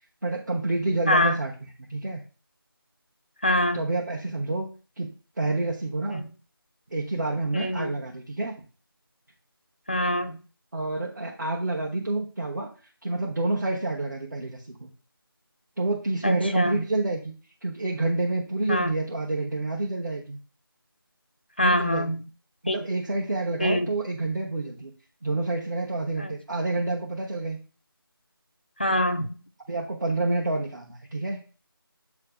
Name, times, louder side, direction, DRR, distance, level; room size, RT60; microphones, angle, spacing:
voice 1, 0.2-2.2 3.7-4.7 5.0-6.2 6.9-8.5 10.7-12.7 13.0-14.9 15.8-17.3 17.6-20.4 21.6-22.0 22.6-24.9 25.2-27.6 29.7-31.4, right 2 dB, 50° right, -2 dB, 1.2 m, -28 dB
voice 2, 3.4-3.8 7.5-7.9 9.9-10.4 16.2-16.8 18.7-18.9 21.6-22.2 22.7-22.8 23.6-23.9 26.2-26.3 28.8-29.3, left 1 dB, 25° left, 8 dB, 0.4 m, -24 dB
7.2 x 3.3 x 5.1 m, 0.35 s
figure-of-eight pair, 165°, 13 cm